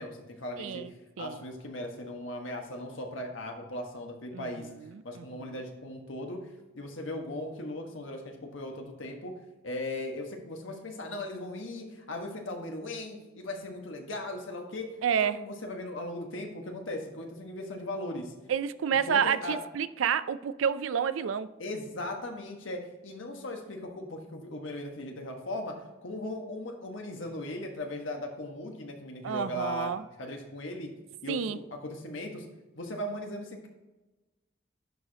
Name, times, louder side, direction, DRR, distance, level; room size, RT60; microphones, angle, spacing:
voice 1, 0.0-4.7 5.0-6.4 6.7-9.3 9.6-14.9 15.2-18.3 19.0-19.6 21.6-29.9 30.2-30.9 31.2-32.4 32.7-33.7, left 1 dB, 80° left, 1.4 m, -38 dB
voice 2, 0.6-1.4 4.3-4.7 5.1-5.5 15.0-15.4 18.5-21.5 29.2-30.0 31.3-31.6, right 7 dB, 85° right, 0.4 m, -29 dB
11.0 x 4.9 x 2.9 m
head